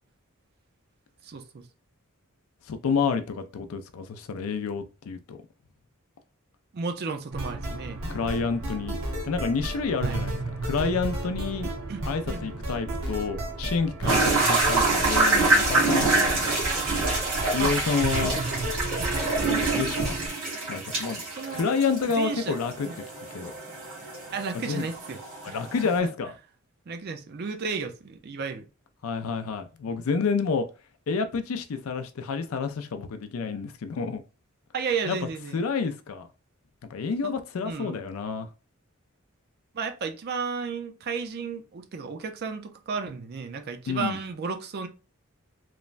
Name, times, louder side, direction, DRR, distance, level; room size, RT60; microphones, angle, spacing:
voice 1, 1.2-1.7 6.7-8.0 10.0-10.2 11.9-12.0 12.3-12.6 14.0-14.2 17.6-17.8 18.2-19.2 21.3-21.7 22.2-22.6 22.8-23.0 24.3-25.2 25.4-25.6 26.9-28.7 34.7-35.6 37.6-38.0 39.7-44.9, right 5 dB, 50° right, 0.4 m, -33 dB
voice 2, 2.7-5.4 8.1-9.0 9.2-10.4 10.6-11.7 12.1-16.5 17.5-18.4 19.5-20.2 20.7-21.2 21.5-22.9 23.3-23.5 24.7-24.9 25.4-26.3 29.0-30.7 31.1-34.2 35.1-35.2 35.5-36.3 36.9-38.5 43.9-44.2, left 5 dB, 75° left, 0.4 m, -29 dB
sound 1, 7.3-20.3, right 1 dB, 70° right, 0.8 m, -33 dB
sound 2, 14.1-26.0, right 3 dB, 90° right, 1.5 m, -26 dB
3.1 x 2.1 x 2.4 m
head